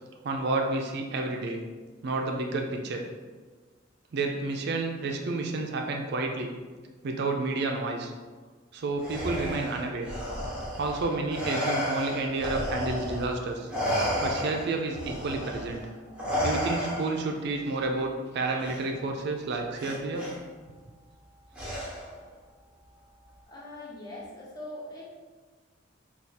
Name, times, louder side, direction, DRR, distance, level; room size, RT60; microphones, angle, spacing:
voice 1, 0.2-1.6 2.0-3.1 4.1-6.5 7.0-8.1 8.7-10.1 10.8-13.7 13.9-15.8 16.4-20.3, right 3 dB, 60° right, 3 dB, 0.4 m, -30 dB
Respiratory sounds, 9.0-13.3 13.7-17.3 18.6-18.8 19.8-20.3 21.5-22.2, equal, 5° right, 1.0 m, -32 dB
voice 2, 23.5-25.0, left 1 dB, 20° left, -6 dB, 1.0 m, -41 dB
3.4 x 2.3 x 4.1 m, 1.4 s
head